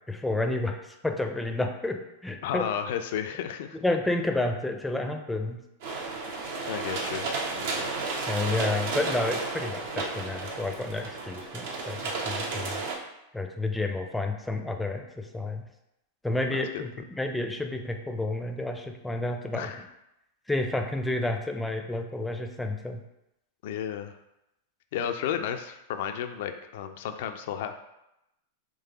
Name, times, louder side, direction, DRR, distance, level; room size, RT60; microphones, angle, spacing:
voice 1, 0.1-0.8 1.0-2.6 3.7-5.6 8.3-12.7 13.3-15.7 16.2-19.7 20.5-23.0, left 2 dB, 5° left, 4 dB, 0.5 m, -30 dB
voice 2, 2.4-3.8 6.7-7.9 16.5-16.8 19.5-19.9 23.6-24.1 24.9-27.8, left 9 dB, 65° left, 8 dB, 0.3 m, -33 dB
sound 1, 5.8-12.9, right 3 dB, 65° right, 0.8 m, -32 dB
3.7 x 3.1 x 2.9 m, 0.87 s
hypercardioid pair, 100°, 0 cm